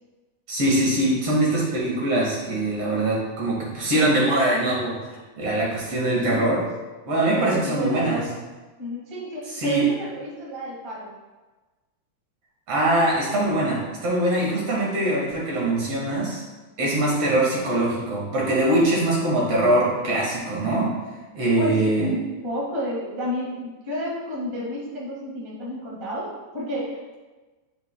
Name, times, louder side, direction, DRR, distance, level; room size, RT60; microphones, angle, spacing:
voice 1, 0.5-5.0 5.4-6.6 7.1-8.2 9.6-9.8 12.7-16.4 16.8-20.9 21.3-22.1, right 1 dB, 50° right, -4 dB, 2.4 m, -22 dB
voice 2, 6.0-6.5 7.2-8.2 8.8-11.1 16.8-17.1 21.6-27.0, equal, 20° right, -6 dB, 0.7 m, -31 dB
10.5 x 5.6 x 2.2 m, 1.2 s
omnidirectional pair, 3.7 m